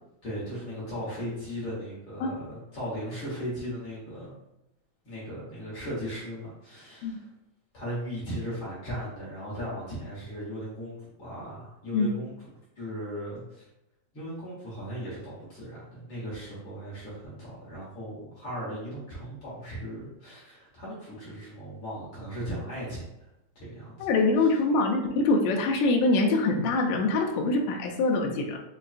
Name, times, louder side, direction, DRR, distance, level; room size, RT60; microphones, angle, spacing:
voice 1, 0.2-4.3 5.0-7.3 7.7-12.3 12.7-13.6 14.1-23.3 23.5-24.1, equal, 55° left, -8 dB, 1.6 m, -37 dB
voice 2, 24.0-28.6, left 3 dB, 80° left, 2 dB, 1.7 m, -24 dB
5.4 x 2.2 x 2.4 m, 0.87 s
omnidirectional pair, 3.4 m